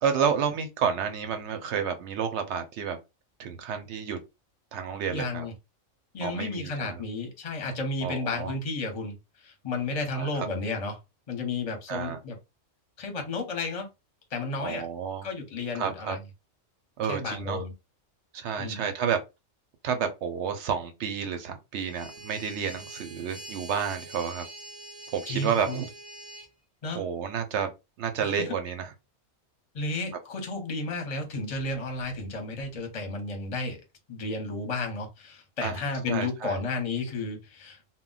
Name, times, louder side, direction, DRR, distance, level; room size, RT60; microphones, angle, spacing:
voice 1, 0.0-3.0 3.4-4.2 4.7-5.4 6.2-7.0 8.0-8.5 10.1-10.5 11.9-12.2 14.6-15.3 15.7-16.2 17.0-17.6 18.3-19.2 19.8-24.4 25.1-25.9 26.9-27.7 28.0-28.9 35.6-35.8 36.1-36.6, right 7 dB, 65° right, 0.8 m, -30 dB
voice 2, 5.1-5.5 6.1-11.0 11.3-12.4 13.0-13.9 14.3-14.8 15.2-16.2 17.1-17.7 18.6-18.9 25.3-25.8 26.8-27.0 28.2-28.5 29.7-33.8 34.1-37.8, left 3 dB, 35° left, 0.7 m, -32 dB
sound 1, 21.8-26.5, right 2 dB, 40° right, 0.6 m, -44 dB
2.2 x 2.1 x 3.8 m
omnidirectional pair, 1.4 m